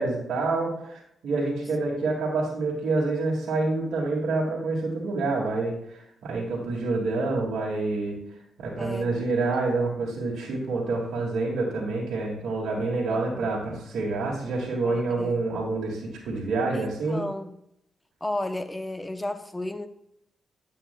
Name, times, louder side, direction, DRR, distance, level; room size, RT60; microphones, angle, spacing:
voice 1, 0.0-8.2 8.6-17.2, right 3 dB, 75° right, -6 dB, 2.1 m, -27 dB
voice 2, 8.8-9.2 13.1-13.6 14.8-15.4 16.7-17.5 18.2-19.9, left 1 dB, 15° left, 10 dB, 0.8 m, -34 dB
9.9 x 8.4 x 2.3 m, 0.77 s
supercardioid pair, 55°, 0 cm